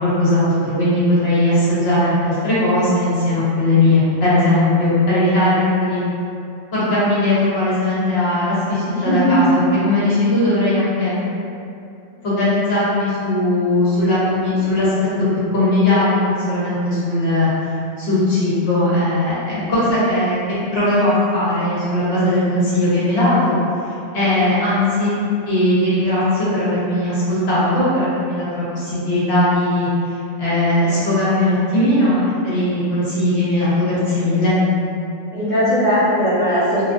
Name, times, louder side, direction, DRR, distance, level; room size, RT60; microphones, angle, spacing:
voice 1, 0.0-6.0 6.7-11.2 12.2-14.9 15.5-17.5 18.0-20.4 20.7-23.6 24.1-25.2 25.4-29.9 30.4-34.6, left 1 dB, 55° left, -10 dB, 0.9 m, -18 dB
voice 2, 8.9-9.3 19.5-19.7 35.3-36.9, equal, 10° right, -14 dB, 0.5 m, -19 dB
2.4 x 2.4 x 2.4 m, 2.6 s
omnidirectional pair, 1.4 m